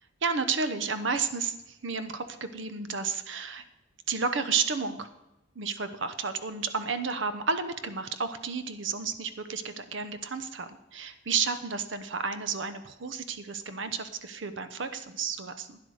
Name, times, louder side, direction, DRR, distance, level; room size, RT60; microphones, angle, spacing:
voice 1, 0.2-3.6 4.1-5.1 5.5-15.8, right 5 dB, 65° right, 10 dB, 0.9 m, -32 dB
12.0 x 9.8 x 4.9 m, 0.93 s
head